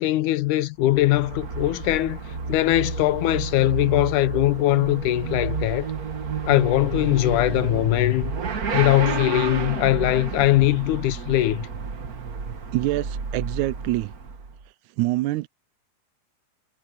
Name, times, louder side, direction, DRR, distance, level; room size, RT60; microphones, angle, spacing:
voice 1, 0.0-2.2 2.5-5.9 6.5-8.3 8.7-11.7, left 16 dB, 85° left, 2.1 m, -21 dB
Motorcycle / Accelerating revving vroom, 0.8-14.6, right 4 dB, 40° right, 1.4 m, -31 dB
voice 2, 12.7-14.1 15.0-15.5, right 18 dB, 80° right, 1.9 m, -25 dB
omnidirectional pair, 3.6 m